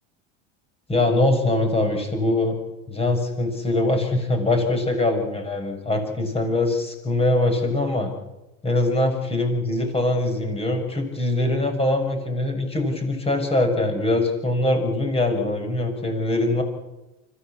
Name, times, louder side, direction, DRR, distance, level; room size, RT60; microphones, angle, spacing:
voice 1, 0.9-2.6 2.9-8.1 8.6-16.6, left 2 dB, 15° left, 5 dB, 6.3 m, -22 dB
25.0 x 15.5 x 8.6 m, 1.0 s
supercardioid pair, 120°, 33 cm